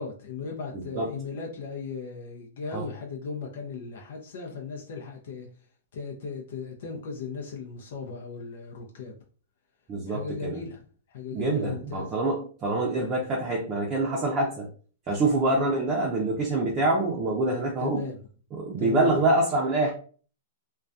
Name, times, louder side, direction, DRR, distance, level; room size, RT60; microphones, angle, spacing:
voice 1, 0.0-5.5 5.9-9.1 10.1-10.8 11.1-12.1 15.5-15.7 17.8-18.2 18.8-19.1, left 5 dB, 65° left, 0.5 m, -37 dB
voice 2, 0.7-1.1 2.7-2.8 9.9-10.6 11.3-14.7 15.1-18.1 18.5-19.9, right 2 dB, 25° right, 0.5 m, -26 dB
2.3 x 2.2 x 2.5 m
hypercardioid pair, 135°, 0 cm